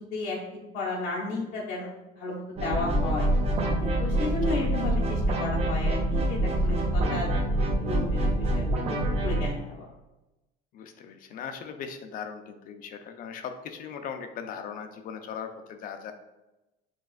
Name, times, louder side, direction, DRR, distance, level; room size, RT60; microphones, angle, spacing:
voice 1, 0.7-3.3 3.8-7.3 7.6-8.8 9.2-9.9, left 3 dB, 70° left, -4 dB, 0.9 m, -34 dB
sound 1, 2.6-9.5, right 1 dB, 35° right, 0.6 m, -26 dB
voice 2, 10.7-16.1, left 7 dB, 50° left, 7 dB, 0.5 m, -39 dB
6.3 x 2.3 x 2.4 m, 1.0 s
cardioid pair, 130°, 19 cm